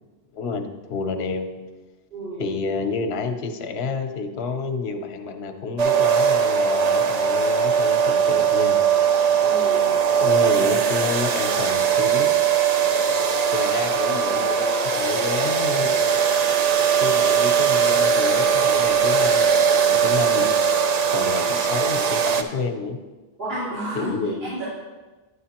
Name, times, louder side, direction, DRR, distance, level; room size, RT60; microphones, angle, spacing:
voice 1, 0.3-1.5 2.4-8.8 10.2-12.3 13.5-16.2 17.0-19.5 19.9-20.5 21.1-23.0 23.9-24.5, left 4 dB, 75° left, 7 dB, 0.9 m, -29 dB
voice 2, 2.1-2.6 9.4-9.9 21.2-21.3 23.4-24.1 24.5-24.6, right 1 dB, 70° right, -13 dB, 3.6 m, -31 dB
sound 1, 5.8-22.4, right 7 dB, 50° right, 0.5 m, -20 dB
9.8 x 8.1 x 2.9 m, 1.2 s
omnidirectional pair, 1.1 m